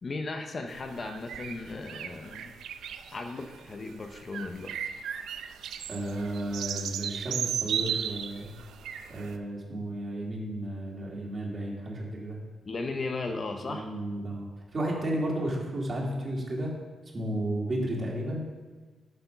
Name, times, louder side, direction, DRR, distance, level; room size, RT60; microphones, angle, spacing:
voice 1, 0.0-2.5 3.1-5.0 12.6-13.9, left 3 dB, 35° left, 5 dB, 0.6 m, -36 dB
sound 1, 0.7-9.3, right 8 dB, 90° right, 0.5 m, -36 dB
voice 2, 5.9-8.5 9.1-12.4 13.6-16.7 17.1-18.4, right 1 dB, 30° right, -3 dB, 2.3 m, -33 dB
7.7 x 6.8 x 5.7 m, 1.4 s
cardioid pair, 145°, 0 cm